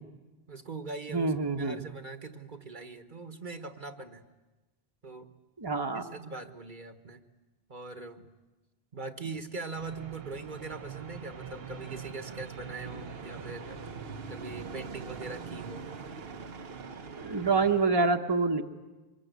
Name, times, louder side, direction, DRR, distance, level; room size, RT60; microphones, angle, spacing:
voice 1, 0.5-4.2 5.0-5.3 5.9-7.2 7.7-8.3 8.9-13.8 14.3-15.9, right 3 dB, 50° right, 7 dB, 1.4 m, -41 dB
voice 2, 1.1-1.8 5.6-6.0 17.2-18.6, right 4 dB, 25° right, 3 dB, 1.1 m, -26 dB
sound 1, 9.7-17.9, right 5 dB, 70° right, 1.3 m, -42 dB
25.0 x 21.5 x 9.3 m, 1.2 s
omnidirectional pair, 1.0 m